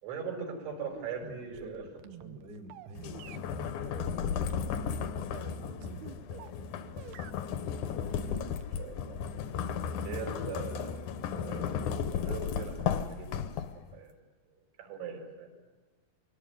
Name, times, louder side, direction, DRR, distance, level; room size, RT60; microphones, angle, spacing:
voice 1, 0.0-1.8 8.8-9.6 10.0-11.8 12.2-13.5 13.9-14.1 14.8-15.5, right 5 dB, 90° right, 1 dB, 7.3 m, -41 dB
sound 1, 0.9-6.6 7.0-8.8, right 9 dB, 75° right, 2.5 m, -49 dB
voice 2, 1.4-4.8 5.6-7.2, equal, 45° right, 3 dB, 1.2 m, -52 dB
sound 2, 3.0-13.9, left 7 dB, 90° left, 1.7 m, -35 dB
24.0 x 18.0 x 9.4 m, 1.3 s
omnidirectional pair, 5.2 m